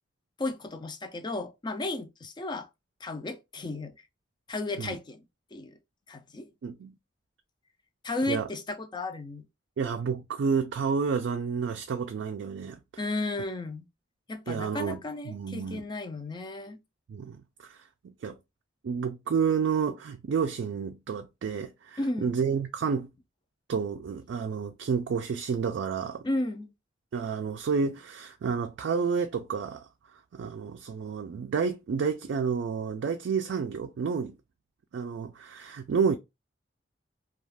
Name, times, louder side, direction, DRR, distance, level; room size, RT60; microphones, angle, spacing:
voice 1, 0.4-2.7 3.0-3.9 4.5-5.2 5.5-5.8 6.1-6.5 8.0-9.4 13.0-13.9 14.3-16.8 22.0-22.3 26.2-26.7, left 2 dB, 25° left, 0.4 m, -34 dB
voice 2, 6.6-6.9 8.3-8.5 9.8-12.8 14.5-15.8 17.1-17.8 18.0-18.4 18.8-23.1 23.7-26.2 27.1-29.9 30.3-34.4 34.9-36.2, right 6 dB, 70° right, 0.3 m, -30 dB
2.3 x 2.3 x 3.2 m
head